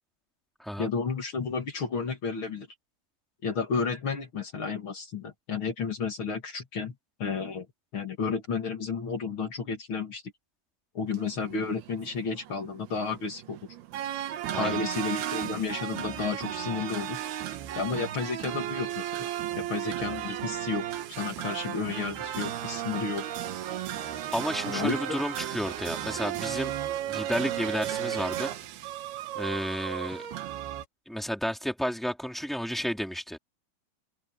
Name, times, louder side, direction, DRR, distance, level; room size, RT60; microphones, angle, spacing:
voice 1, 0.8-2.7 3.4-6.9 7.2-7.7 7.9-10.2 10.9-13.6 14.6-17.2 17.8-19.3 19.6-23.2 24.7-25.2, left 5 dB, 40° left, 2.3 m, -32 dB
sound 1, 11.1-30.8, right 11 dB, 75° right, 3.4 m, -35 dB
voice 2, 24.3-26.7 27.1-28.5 29.3-30.2 31.1-33.4, equal, ahead, 2.7 m, -32 dB
omnidirectional pair, 4.5 m